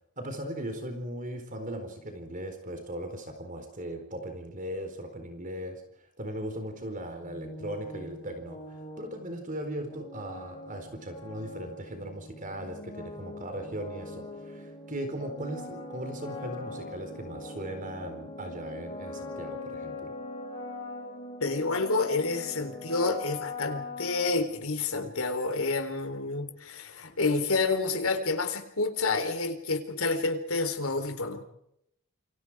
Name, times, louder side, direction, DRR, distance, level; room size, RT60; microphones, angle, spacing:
voice 1, 0.2-5.8 6.2-20.1, right 1 dB, 35° right, 6 dB, 4.2 m, -38 dB
sound 1, 7.2-24.9, left 2 dB, 25° left, 7.6 m, -42 dB
voice 2, 21.4-31.4, left 3 dB, 70° left, 6 dB, 3.9 m, -29 dB
29.0 x 25.0 x 4.9 m, 0.77 s
head